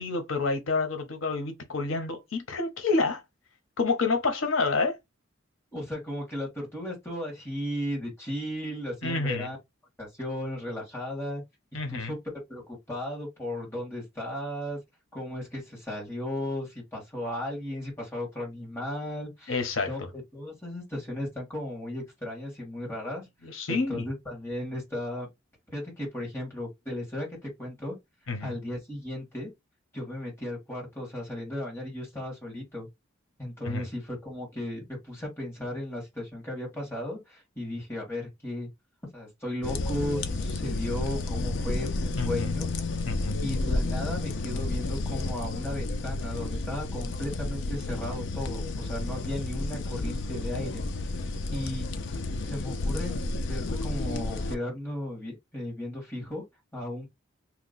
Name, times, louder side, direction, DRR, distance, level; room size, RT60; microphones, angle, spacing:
voice 1, 0.0-3.2 3.8-5.0 9.0-9.5 11.7-12.1 19.5-19.9 23.4-24.1 28.3-28.6 33.6-33.9 42.2-42.5 43.1-43.4, left 3 dB, 90° left, 0.8 m, -28 dB
voice 2, 5.7-9.6 10.0-11.4 11.9-12.2 12.5-12.6 12.9-14.8 15.1-20.0 20.3-23.2 23.7-25.3 25.7-28.0 28.4-29.5 29.9-32.9 33.4-38.7 39.1-42.7 43.4-51.1 51.5-51.8 52.4-53.2 53.5-56.4 56.7-57.1, left 1 dB, 10° left, 1.7 m, -35 dB
sound 1, 39.6-54.5, left 2 dB, 60° left, 0.5 m, -31 dB
2.9 x 2.1 x 3.9 m
head